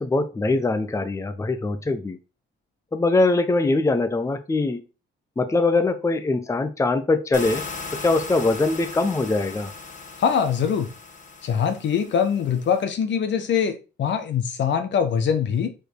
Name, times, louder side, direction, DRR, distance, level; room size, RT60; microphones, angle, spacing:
voice 1, 0.0-2.2 2.9-4.8 5.4-7.6 8.0-9.7, left 3 dB, 15° left, 0.7 m, -22 dB
sound 1, 7.3-12.8, left 4 dB, 40° left, 1.5 m, -38 dB
voice 2, 10.2-10.9 11.4-15.7, left 7 dB, 65° left, 1.1 m, -23 dB
4.9 x 4.6 x 4.6 m
cardioid pair, 90°, 20 cm